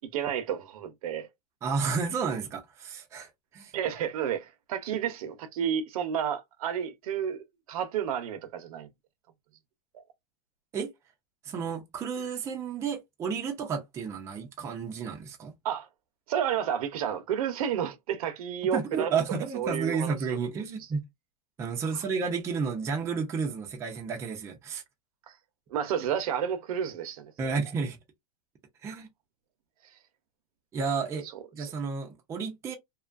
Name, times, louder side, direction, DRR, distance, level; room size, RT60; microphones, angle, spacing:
voice 1, 0.1-1.3 3.7-8.9 9.9-10.0 15.6-15.9 16.3-19.2 19.5-20.4 25.7-27.3 31.6-31.7, right 9 dB, 65° right, 0.7 m, -31 dB
voice 2, 1.6-3.7 10.7-10.9 11.4-15.5 18.6-21.0 21.6-24.8 27.4-28.0 28.8-29.1 30.7-31.3 31.5-32.8, right 5 dB, 15° right, 0.5 m, -31 dB
2.7 x 2.3 x 2.4 m
supercardioid pair, 155°, 20 cm